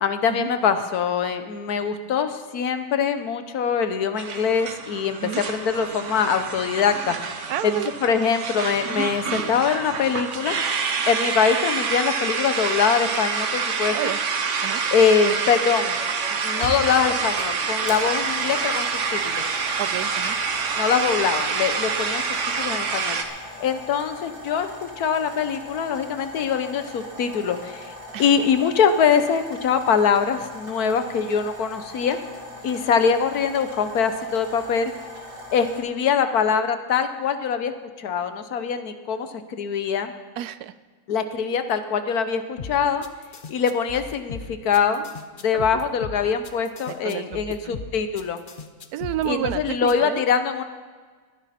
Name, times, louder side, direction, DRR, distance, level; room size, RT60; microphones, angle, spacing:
voice 1, 0.0-7.1 7.6-10.5 11.1-14.1 14.9-16.0 16.4-18.9 19.1-19.4 20.8-22.2 22.6-23.2 23.6-27.9 28.2-32.2 32.6-34.9 35.5-40.1 41.1-43.0 43.5-45.0 45.4-48.4 49.2-50.6, left 6 dB, 80° left, 9 dB, 1.4 m, -23 dB
sound 1, 4.2-23.2, right 5 dB, 55° right, 1.3 m, -27 dB
voice 2, 7.5-7.9 13.9-14.2 14.6-14.8 19.8-20.4 28.1-28.2 40.4-40.7 45.5-45.6 46.9-47.8 48.9-50.2, right 11 dB, 85° right, 15 dB, 1.1 m, -30 dB
sound 2, 16.0-16.1 16.6-35.8, equal, 35° right, 2.3 m, -40 dB
sound 3, 42.6-49.9, left 5 dB, 45° left, 0.8 m, -37 dB
21.0 x 10.5 x 4.2 m, 1.5 s
omnidirectional pair, 1.6 m